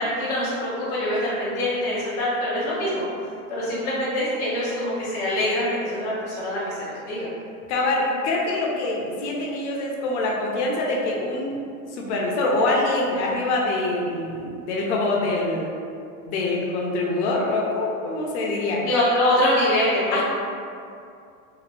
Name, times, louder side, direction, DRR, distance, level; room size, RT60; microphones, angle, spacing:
voice 1, 0.0-3.0 3.5-7.3 18.8-20.2, left 1 dB, 10° left, -12 dB, 0.4 m, -24 dB
voice 2, 7.7-11.6 11.9-15.7 16.2-18.8 20.1-20.2, left 2 dB, 55° left, -2 dB, 0.6 m, -25 dB
2.9 x 2.5 x 2.9 m, 2.5 s
supercardioid pair, 155°, 42 cm